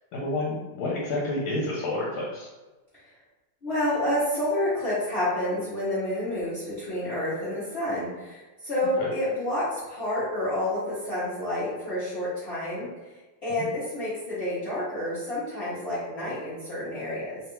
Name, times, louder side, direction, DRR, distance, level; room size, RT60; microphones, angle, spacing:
voice 1, 0.1-2.5, left 2 dB, 80° left, -4 dB, 1.4 m, -29 dB
voice 2, 3.6-13.1 13.4-17.4, left 1 dB, 60° left, -11 dB, 0.6 m, -29 dB
3.3 x 2.3 x 2.9 m, 1.2 s
omnidirectional pair, 2.3 m